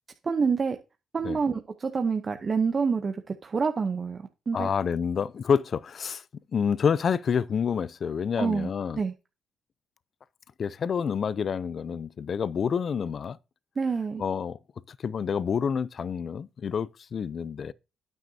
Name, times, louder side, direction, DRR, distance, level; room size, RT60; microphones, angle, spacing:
voice 1, 0.2-0.8 1.1-4.7 8.4-8.7 8.9-9.1 13.8-14.2, right 5 dB, 35° right, 0.7 m, -27 dB
voice 2, 4.5-6.2 6.5-9.0 10.6-13.4 14.2-14.6 14.9-17.7, left 6 dB, 50° left, 0.4 m, -28 dB
9.2 x 7.4 x 2.7 m
cardioid pair, 90°, 0 cm